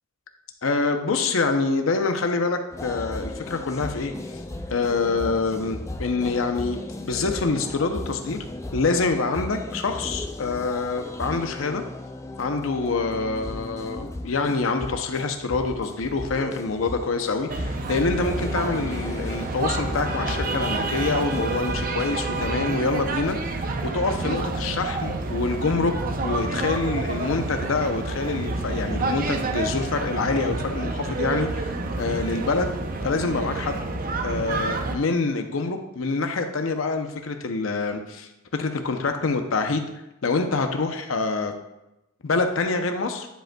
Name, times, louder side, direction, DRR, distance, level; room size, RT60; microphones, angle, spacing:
voice 1, 0.6-4.1 4.7-8.4 8.7-11.8 12.4-25.9 26.2-32.7 33.0-33.9 34.2-39.9 40.2-41.5 42.2-43.3, left 3 dB, 80° left, 6 dB, 0.6 m, -26 dB
sound 1, 2.7-22.6, left 1 dB, 15° left, 0.4 m, -36 dB
sound 2, 17.5-35.0, right 3 dB, 45° right, 0.5 m, -29 dB
10.0 x 5.1 x 2.2 m, 0.92 s
head